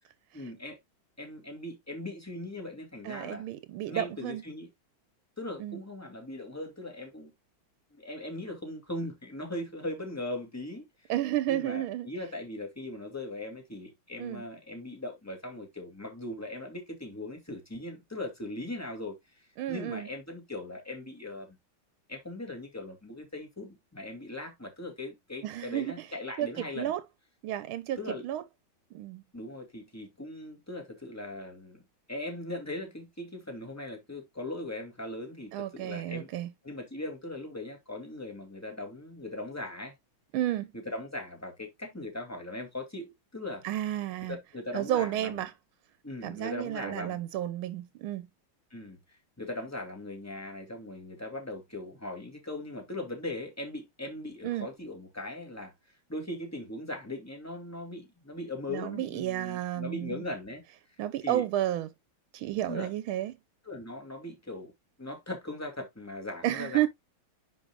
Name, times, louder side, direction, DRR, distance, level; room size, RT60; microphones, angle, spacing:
voice 1, 0.3-0.8 1.2-3.5 3.9-4.7 5.4-7.3 7.9-11.1 11.5-19.2 19.7-21.6 22.1-26.9 28.0-28.2 29.3-31.8 32.1-36.3 36.6-39.9 40.7-43.6 44.3-45.4 46.0-47.2 48.7-55.7 56.1-60.6 61.2-61.5 62.7-62.9 63.7-64.7 65.0-66.9, left 1 dB, 10° left, 2.4 m, -39 dB
voice 2, 3.0-4.4 5.6-5.8 11.1-12.1 14.2-14.4 19.6-20.1 25.4-26.1 26.4-27.0 27.4-28.0 28.2-28.4 28.9-29.2 35.5-36.5 40.3-40.7 43.6-44.4 44.7-45.5 46.2-48.3 54.4-54.7 58.7-60.2 61.0-61.9 62.3-63.3 66.4-66.9, right 13 dB, 85° right, 1.5 m, -32 dB
10.0 x 4.9 x 2.3 m
omnidirectional pair, 2.2 m